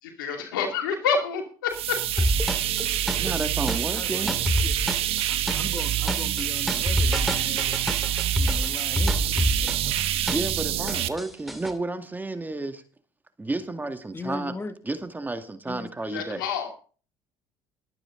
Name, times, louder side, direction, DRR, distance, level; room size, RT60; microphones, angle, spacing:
voice 1, 0.0-2.0 10.8-11.0 16.1-16.7, left 6 dB, 85° left, 2.5 m, -28 dB
sound 1, 1.7-11.1, right 12 dB, 60° right, 1.1 m, -27 dB
sound 2, 2.2-10.6 10.9-11.7, equal, ahead, 2.2 m, -27 dB
voice 2, 3.2-4.3 10.3-12.8 13.4-14.6 14.8-16.4, right 2 dB, 15° right, 2.0 m, -31 dB
voice 3, 3.9-4.4 4.6-4.7 5.3-7.8 8.3-10.5 14.1-14.7 15.7-15.9, left 3 dB, 20° left, 1.9 m, -39 dB
21.5 x 9.0 x 3.8 m
hypercardioid pair, 65°, 11 cm